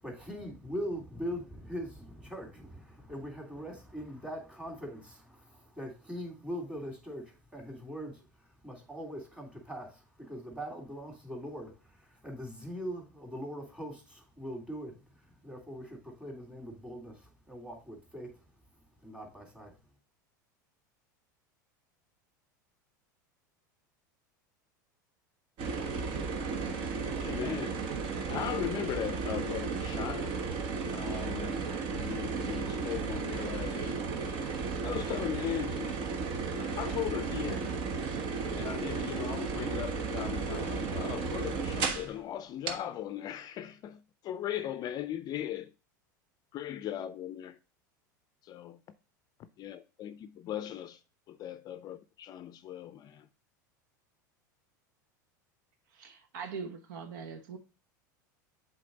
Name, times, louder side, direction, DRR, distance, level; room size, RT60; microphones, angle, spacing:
voice 1, 0.0-8.3 8.6-11.7 12.0-14.9 15.3-18.4 19.0-19.7, equal, 10° right, 3.0 m, -41 dB
sound 1, 25.6-42.1 42.7-42.8, right 4 dB, 50° right, 1.3 m, -34 dB
voice 2, 27.2-27.8 28.3-30.5 30.9-31.7 31.9-34.0 34.8-36.0 36.5-37.7 38.5-45.7 46.5-47.6 48.4-48.8 49.6-51.0 51.3-53.3, left 11 dB, 40° left, 0.5 m, -38 dB
voice 3, 55.9-57.6, right 5 dB, 70° right, 0.9 m, -41 dB
7.5 x 4.0 x 4.0 m
hypercardioid pair, 95°, 10 cm